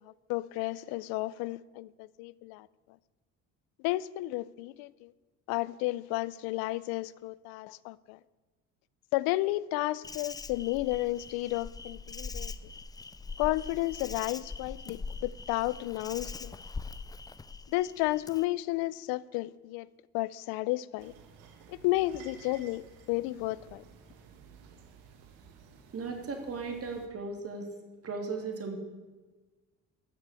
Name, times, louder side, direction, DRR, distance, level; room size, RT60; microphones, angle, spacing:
voice 1, 0.0-2.7 3.8-5.1 5.5-8.2 9.1-12.5 13.4-16.5 17.7-19.9 20.1-21.1 21.7-23.8, left 18 dB, 85° left, 0.6 m, -32 dB
Insect, 10.0-18.4, left 4 dB, 10° left, 0.4 m, -42 dB
sound 1, 21.0-27.1, right 6 dB, 85° right, 1.7 m, -54 dB
voice 2, 25.9-27.7 28.0-28.8, right 4 dB, 40° right, 3.0 m, -36 dB
13.5 x 6.8 x 8.3 m
supercardioid pair, 95°, 36 cm